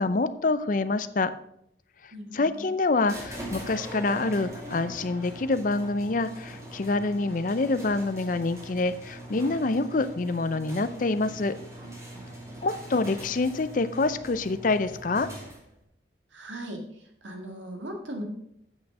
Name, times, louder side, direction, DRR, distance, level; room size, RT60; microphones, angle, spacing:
voice 1, 0.0-1.3 2.3-11.6 12.6-15.3, left 3 dB, 45° left, 13 dB, 0.5 m, -26 dB
voice 2, 2.1-2.7 16.3-16.8 17.2-18.2, right 1 dB, 85° right, 2 dB, 2.1 m, -38 dB
sound 1, 3.0-15.8, right 1 dB, 15° right, 2.6 m, -42 dB
8.3 x 6.2 x 6.0 m, 0.75 s
head